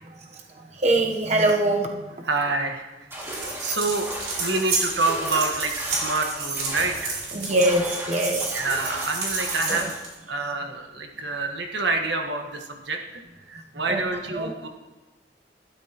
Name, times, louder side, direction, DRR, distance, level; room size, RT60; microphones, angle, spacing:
voice 1, 0.8-2.0 7.3-8.6 9.7-9.8 13.9-14.0 14.4-14.5, right 1 dB, 40° right, 2 dB, 0.9 m, -22 dB
voice 2, 2.2-4.1 4.4-7.2 8.5-9.9 10.3-13.0 13.4-14.7, right 3 dB, 90° right, 3 dB, 1.4 m, -27 dB
sound 1, 3.1-10.0, equal, 15° right, 2.3 m, -36 dB
sound 2, 3.2-10.1, right 3 dB, 65° right, 4.0 m, -31 dB
13.0 x 12.0 x 3.0 m, 1.2 s
head